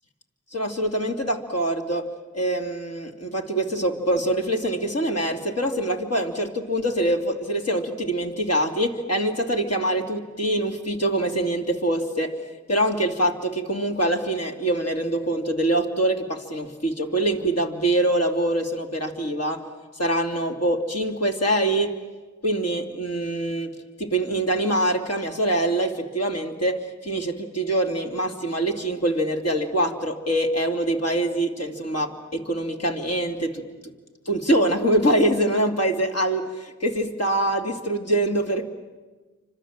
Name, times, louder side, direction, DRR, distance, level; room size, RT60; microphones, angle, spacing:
voice 1, 0.5-12.4 12.7-19.6 19.9-21.9 22.4-33.7 34.2-38.6, right 1 dB, 55° left, 3 dB, 3.0 m, -24 dB
29.5 x 26.0 x 7.6 m, 1.3 s
wide cardioid pair, 55°, 30 cm